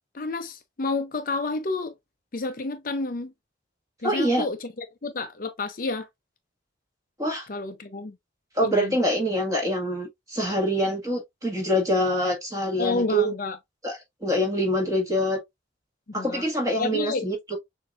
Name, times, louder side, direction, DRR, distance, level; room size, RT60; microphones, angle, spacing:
voice 1, 0.1-1.9 2.3-3.3 4.0-6.1 7.5-8.2 8.6-9.0 12.8-13.6 16.1-16.5 16.8-17.3, left 3 dB, 45° left, 0.6 m, -30 dB
voice 2, 4.0-4.4 7.2-7.5 8.5-13.3 13.8-15.4 16.1-17.6, equal, 20° right, 1.7 m, -25 dB
6.8 x 2.7 x 2.4 m
head